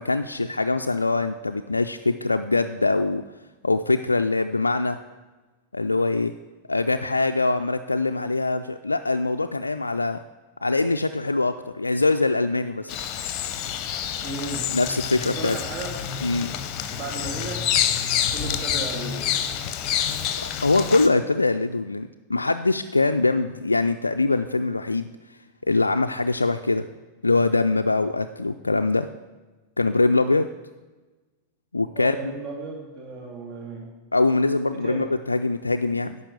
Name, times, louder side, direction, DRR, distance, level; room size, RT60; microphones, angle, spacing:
voice 1, 0.0-3.2 3.6-5.0 5.7-6.3 6.7-10.2 10.6-12.9 14.7-15.6 16.2-16.5 20.4-25.1 25.7-26.8 27.2-29.1 29.8-30.5 31.7-32.2 34.1-36.2, left 3 dB, 80° left, 6 dB, 0.3 m, -23 dB
Bird vocalization bird call bird song, 12.9-21.1, left 9 dB, 40° left, 0.8 m, -28 dB
voice 2, 14.2-14.7 15.2-16.0 16.9-17.7 18.3-19.2 31.9-33.9 34.7-35.1, right 3 dB, 40° right, 0 dB, 2.3 m, -34 dB
10.5 x 5.5 x 7.8 m, 1.2 s
figure-of-eight pair, 90°, 0 cm